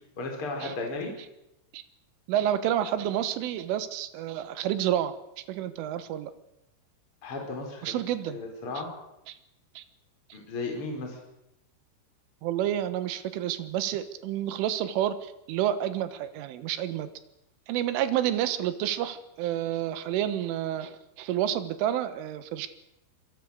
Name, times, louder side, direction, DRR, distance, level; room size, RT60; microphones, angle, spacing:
voice 1, 0.2-1.1 7.2-8.0 8.3-8.9 10.3-11.2, left 3 dB, 25° left, 1 dB, 5.1 m, -34 dB
voice 2, 2.3-5.1 5.5-6.3 7.8-8.4 9.3-9.4 9.8-9.9 12.4-17.1 17.7-22.7, right 11 dB, 80° right, 12 dB, 3.8 m, -29 dB
26.5 x 22.0 x 6.6 m, 0.86 s
omnidirectional pair, 5.8 m